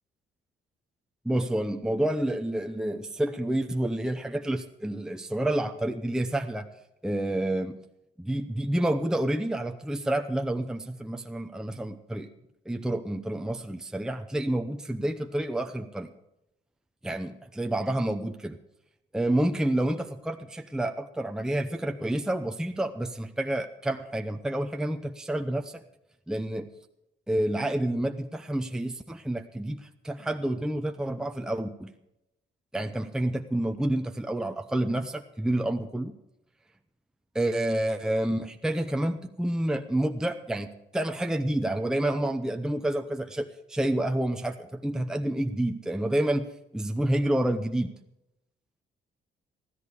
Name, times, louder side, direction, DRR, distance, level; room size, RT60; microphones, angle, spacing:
voice 1, 1.2-6.7 7.0-7.8 8.2-12.3 12.7-16.1 17.0-18.6 19.1-25.8 26.3-26.7 27.3-31.9 32.7-36.2 37.3-47.9, right 1 dB, 5° right, 6 dB, 0.8 m, -29 dB
14.5 x 13.0 x 5.0 m, 0.86 s
cardioid pair, 90°, 20 cm